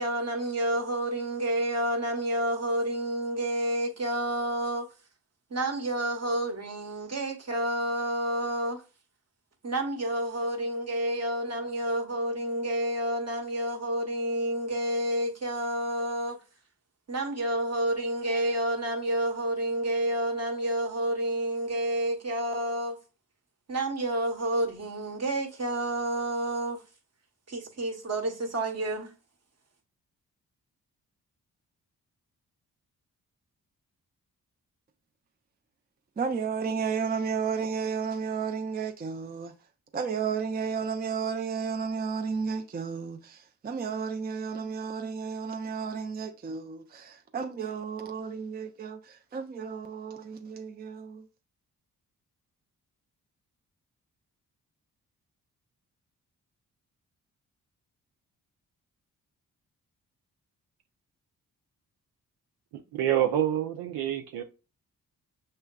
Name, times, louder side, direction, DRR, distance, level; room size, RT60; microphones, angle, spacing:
voice 1, 0.0-4.9 5.5-8.8 9.6-16.4 17.1-23.0 23.7-26.8 27.5-29.1, right 1 dB, 40° right, 1.1 m, -29 dB
voice 2, 36.2-39.5 39.9-51.2, right 6 dB, 25° right, 0.5 m, -33 dB
voice 3, 62.7-64.4, right 11 dB, 80° right, 0.5 m, -27 dB
6.4 x 2.2 x 2.3 m
supercardioid pair, 45°, 39 cm